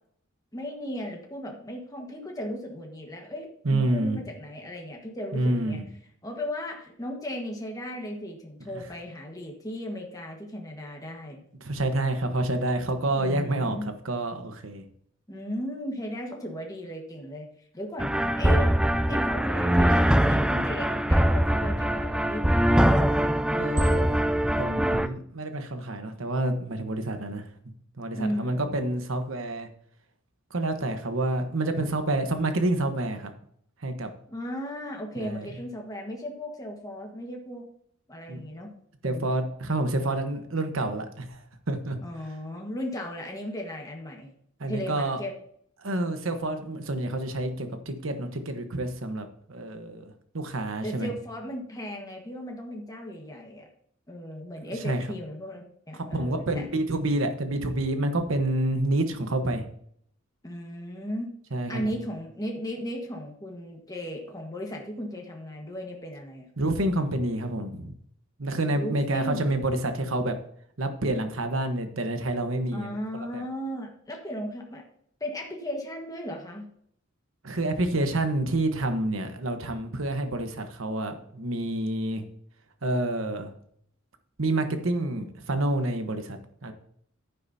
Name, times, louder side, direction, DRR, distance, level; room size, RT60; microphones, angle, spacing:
voice 1, 0.5-5.8 6.2-11.4 13.1-13.8 15.3-17.5 17.7-18.7 19.1-22.9 28.1-28.8 34.3-37.7 38.1-38.7 39.0-39.3 42.0-44.3 44.7-45.3 50.8-53.7 54.1-56.6 60.4-61.3 61.7-66.5 68.7-69.4 72.7-74.8 75.2-76.7, equal, 20° left, 0 dB, 1.5 m, -36 dB
voice 2, 3.6-4.2 5.3-5.8 8.7-8.8 11.6-13.8 14.0-14.8 23.5-24.2 24.6-27.5 28.0-29.7 30.5-33.3 33.8-34.1 35.2-35.5 38.3-38.4 39.0-42.0 44.6-45.2 45.8-51.1 54.7-55.1 55.9-59.7 61.5-61.9 66.6-67.9 68.4-70.4 70.8-72.9 73.3-73.4 77.4-82.2 82.8-83.5 84.4-86.7, right 1 dB, 70° right, 7 dB, 1.2 m, -28 dB
sound 1, 18.0-25.1, equal, 5° right, 0.3 m, -22 dB
10.5 x 9.6 x 2.8 m, 0.66 s
head